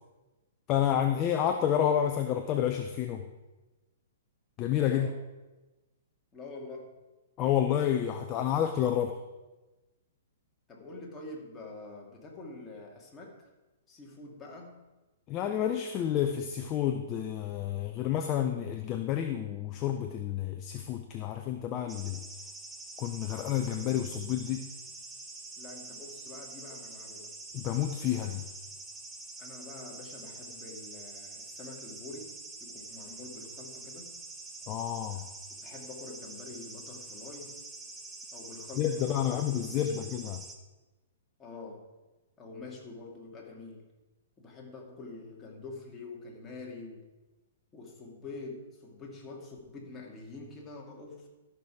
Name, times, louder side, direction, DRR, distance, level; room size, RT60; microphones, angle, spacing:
voice 1, 0.7-3.3 4.6-5.1 7.4-9.2 15.3-22.2 23.0-24.7 27.5-28.4 34.7-35.2 38.8-40.4, left 10 dB, 30° left, 6 dB, 0.7 m, -29 dB
voice 2, 4.9-5.2 6.3-6.9 10.7-13.5 13.9-14.8 25.6-27.4 29.4-34.1 35.1-35.2 35.6-37.6 38.3-40.1 41.4-41.9 42.4-43.9 44.4-47.1 47.7-51.3, left 3 dB, 15° left, -2 dB, 2.4 m, -46 dB
sound 1, 21.9-40.6, right 3 dB, 10° right, 1.1 m, -46 dB
13.5 x 6.1 x 4.9 m, 1.1 s
hypercardioid pair, 135°, 0 cm